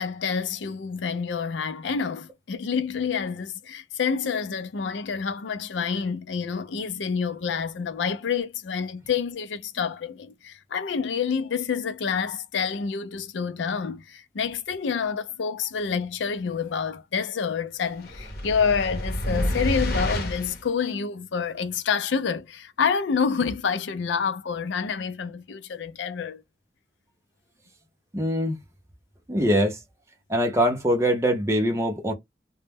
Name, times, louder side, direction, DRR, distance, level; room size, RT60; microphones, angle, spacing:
voice 1, 0.0-26.4, left 6 dB, 80° left, 0.4 m, -28 dB
sound 1, 18.0-20.6, equal, 55° left, 0.8 m, -28 dB
voice 2, 28.1-28.6 29.3-29.8 30.3-32.1, equal, 15° right, 0.6 m, -23 dB
2.1 x 2.0 x 3.3 m
head